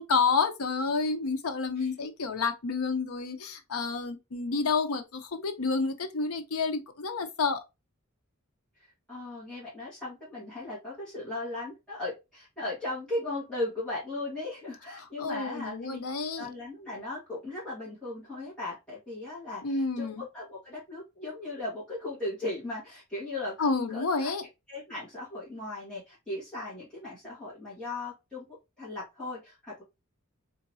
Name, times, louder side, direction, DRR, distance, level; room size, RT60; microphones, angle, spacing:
voice 1, 0.0-7.6 15.2-16.5 19.6-20.2 23.6-24.4, left 4 dB, 85° left, 0.7 m, -29 dB
voice 2, 1.8-2.1 8.8-16.0 16.4-24.3 24.7-28.4 28.8-29.8, left 2 dB, 5° left, 1.4 m, -37 dB
3.8 x 2.5 x 2.7 m
head